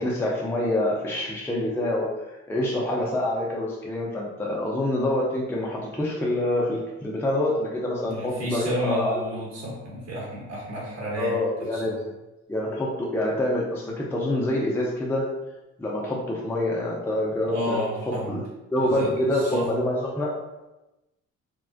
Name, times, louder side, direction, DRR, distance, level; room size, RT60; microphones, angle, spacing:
voice 1, 0.0-2.1 2.5-9.2 11.2-12.0 12.5-15.2 15.8-17.8 18.1-18.4 18.7-20.3, left 1 dB, 10° left, -3 dB, 0.4 m, -26 dB
voice 2, 8.0-12.0 17.4-18.4 18.8-19.7, equal, 55° right, -5 dB, 0.9 m, -31 dB
2.3 x 2.2 x 2.4 m, 1.0 s
cardioid pair, 90°, 30 cm